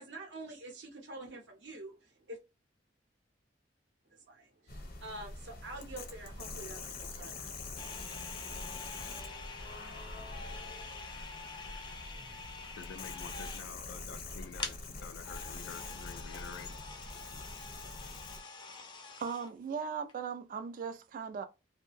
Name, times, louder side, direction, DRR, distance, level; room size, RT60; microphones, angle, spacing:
voice 1, 0.0-2.4 4.1-7.9, right 2 dB, 75° right, 0.9 m, -47 dB
sound 1, 4.7-18.4, left 3 dB, 55° left, 0.8 m, -45 dB
sound 2, 7.8-13.9 14.3-14.4 14.6-14.8 15.2-19.5 20.1-20.2, left 4 dB, 25° left, 0.5 m, -46 dB
voice 2, 12.7-16.8, left 6 dB, 85° left, 0.3 m, -48 dB
voice 3, 19.0-21.4, right 6 dB, 50° right, 0.3 m, -38 dB
2.7 x 2.2 x 3.0 m
head